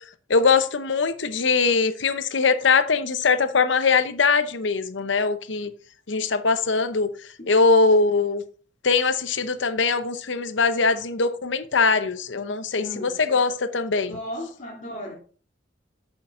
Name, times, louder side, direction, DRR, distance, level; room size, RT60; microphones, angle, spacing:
voice 1, 0.3-5.7 6.1-7.1 7.5-8.4 8.8-14.1, left 4 dB, 80° left, 0.8 m, -21 dB
voice 2, 12.8-13.2 14.1-15.1, left 1 dB, 40° left, 2.4 m, -35 dB
8.5 x 6.8 x 3.7 m
head